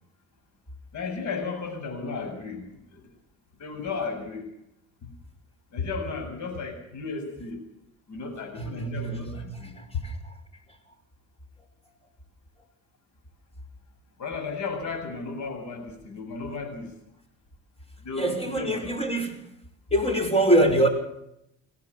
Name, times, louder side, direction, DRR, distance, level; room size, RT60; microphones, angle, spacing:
voice 1, 0.9-2.7 2.9-3.0 3.6-4.5 5.0-5.1 5.7-7.6 8.1-9.7 14.2-16.9 18.0-18.9, left 4 dB, 70° left, 5 dB, 7.9 m, -34 dB
voice 2, 8.8-9.1 9.5-10.1 18.1-19.3 19.9-20.9, right 1 dB, 20° left, 7 dB, 6.0 m, -24 dB
23.0 x 17.0 x 7.0 m, 0.80 s
cardioid pair, 90°, 30 cm